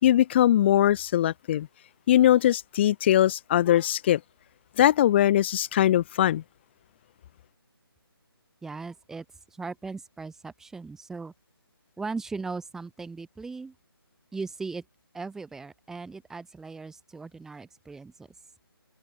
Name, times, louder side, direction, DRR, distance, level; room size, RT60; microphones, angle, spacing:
voice 1, 0.0-1.7 2.1-4.2 4.8-6.4, left 12 dB, 25° left, 4.8 m, -21 dB
voice 2, 8.6-9.3 9.5-11.3 12.0-13.8 14.3-14.8 15.1-18.3, right 4 dB, 5° right, 5.3 m, -38 dB
figure-of-eight pair, 160°, 13 cm